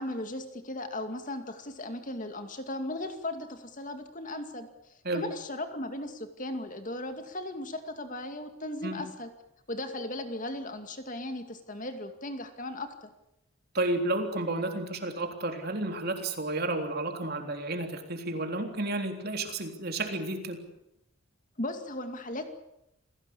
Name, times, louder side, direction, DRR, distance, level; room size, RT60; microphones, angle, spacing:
voice 1, 0.0-4.7 5.1-9.3 9.7-12.9 21.6-22.5, left 1 dB, 40° left, 7 dB, 2.4 m, -37 dB
voice 2, 13.7-20.6, right 2 dB, 45° right, 5 dB, 3.6 m, -31 dB
28.0 x 18.0 x 8.6 m, 0.84 s
head